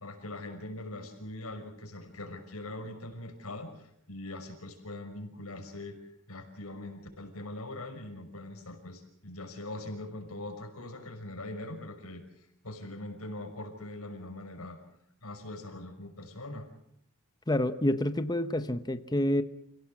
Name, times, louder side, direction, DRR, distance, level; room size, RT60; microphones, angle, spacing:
voice 1, 0.0-6.0 6.3-14.8 15.2-16.7, left 1 dB, 75° left, 4 dB, 5.8 m, -42 dB
voice 2, 17.5-19.4, left 1 dB, 20° left, 11 dB, 0.9 m, -28 dB
29.0 x 17.5 x 7.7 m, 0.72 s
head